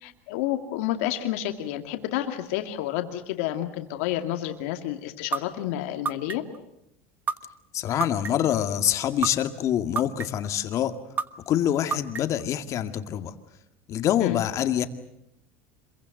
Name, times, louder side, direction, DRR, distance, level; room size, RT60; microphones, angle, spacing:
voice 1, 0.0-6.4 14.2-14.4, left 13 dB, 80° left, 6 dB, 2.3 m, -30 dB
sound 1, 5.3-5.4 6.0-6.6 7.3-7.4 8.0-8.5 9.2-9.3 10.0-10.5 11.2-11.3 11.9-12.4, right 5 dB, 25° right, 1.2 m, -27 dB
voice 2, 7.7-10.9 11.5-13.3 13.9-14.9, left 11 dB, 45° left, 8 dB, 2.1 m, -25 dB
26.5 x 23.0 x 7.9 m, 0.78 s
supercardioid pair, 110°, 7 cm